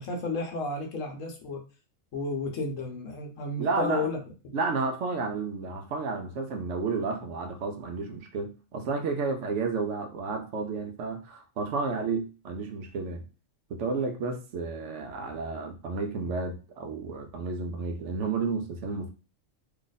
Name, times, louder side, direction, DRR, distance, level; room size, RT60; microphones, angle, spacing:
voice 1, 0.0-1.6 2.1-4.2 4.4-4.6, left 2 dB, 75° left, 1.2 m, -32 dB
voice 2, 3.6-4.1 4.5-13.3 13.7-19.1, right 4 dB, 65° right, 1.0 m, -31 dB
3.0 x 2.5 x 4.0 m
omnidirectional pair, 1.4 m